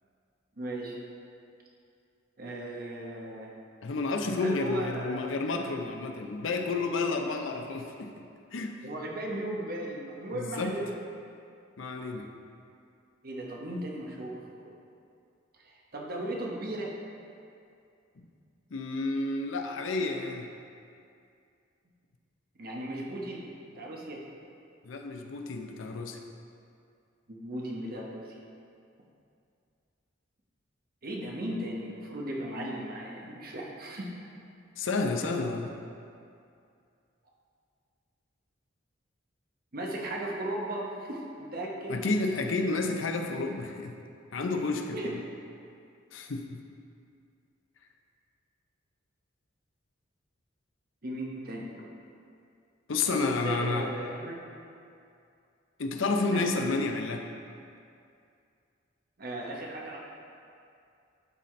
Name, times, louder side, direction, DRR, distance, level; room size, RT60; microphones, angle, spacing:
voice 1, 0.6-1.0 2.4-3.5 4.4-5.4 8.8-10.9 13.2-14.7 15.6-16.9 22.6-24.2 27.3-28.4 31.0-34.1 39.7-42.0 44.9-45.1 51.0-51.9 53.1-54.4 56.3-56.4 59.2-60.0, right 1 dB, 50° right, -2 dB, 1.0 m, -36 dB
voice 2, 3.8-8.1 8.5-8.7 10.3-10.7 11.8-12.3 18.2-18.3 18.7-20.5 24.8-26.2 34.8-35.7 41.9-43.9 44.3-45.2 46.1-46.6 52.9-53.9 55.8-57.2, left 3 dB, 75° left, 4 dB, 0.6 m, -30 dB
12.0 x 4.2 x 3.2 m, 2.5 s
head